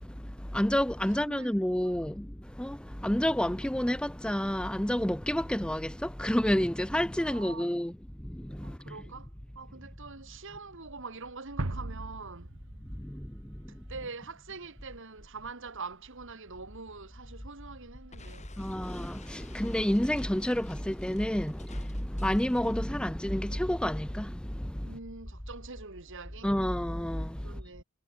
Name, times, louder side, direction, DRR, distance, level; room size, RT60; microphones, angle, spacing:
voice 1, 0.0-9.0 12.9-13.8 18.6-25.0 26.4-27.6, equal, 5° left, 0.7 m, -30 dB
voice 2, 1.2-1.5 7.2-7.7 8.6-9.3 9.5-12.5 13.7-18.5 24.8-26.6 27.4-27.8, right 4 dB, 65° right, 2.8 m, -44 dB
sound 1, 11.6-14.4, right 2 dB, 85° right, 1.7 m, -39 dB
Explosion, 18.1-22.9, left 3 dB, 35° left, 3.6 m, -54 dB
head